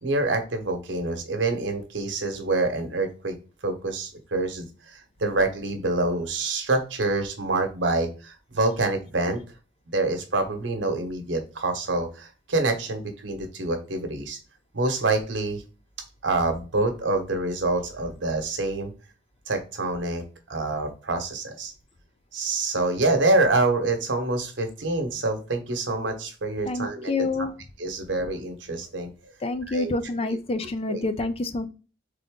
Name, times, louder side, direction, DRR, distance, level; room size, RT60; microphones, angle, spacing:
voice 1, 0.0-3.3 3.6-9.4 9.9-14.4 14.7-15.6 16.2-18.9 19.5-20.2 20.5-21.7 22.3-27.2 27.8-29.1 29.7-29.9 30.9-31.0, right 2 dB, 80° right, 5 dB, 1.1 m, -26 dB
voice 2, 26.7-27.5 29.4-31.7, left 3 dB, 35° left, 10 dB, 0.5 m, -27 dB
3.8 x 3.7 x 3.7 m, 0.33 s
head